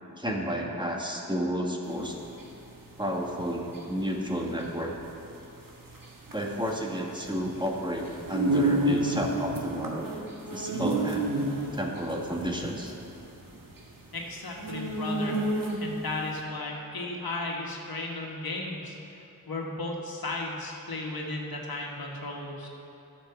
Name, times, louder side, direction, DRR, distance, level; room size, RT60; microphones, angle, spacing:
voice 1, 0.2-2.2 3.0-4.9 6.3-10.1 10.5-11.3 11.7-12.9, equal, 15° right, -1 dB, 1.5 m, -31 dB
sound 1, 1.9-16.1, right 1 dB, 65° right, 1.6 m, -31 dB
voice 2, 14.1-15.4 15.8-18.9 19.5-22.7, left 2 dB, 85° left, -1 dB, 1.5 m, -35 dB
11.5 x 6.4 x 7.0 m, 3.0 s
wide cardioid pair, 65°, 36 cm